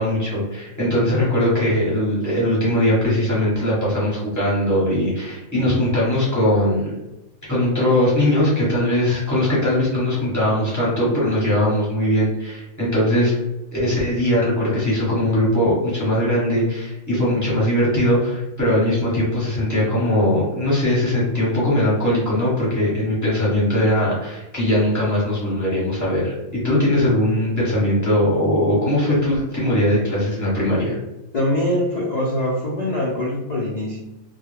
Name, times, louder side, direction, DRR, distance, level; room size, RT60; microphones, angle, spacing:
voice 1, 0.0-7.0 7.5-13.3 13.7-26.3 26.6-31.0, left 1 dB, 15° left, -8 dB, 1.0 m, -20 dB
voice 2, 31.3-34.0, left 1 dB, 45° left, -6 dB, 0.5 m, -23 dB
2.3 x 2.2 x 3.2 m, 0.97 s
omnidirectional pair, 1.4 m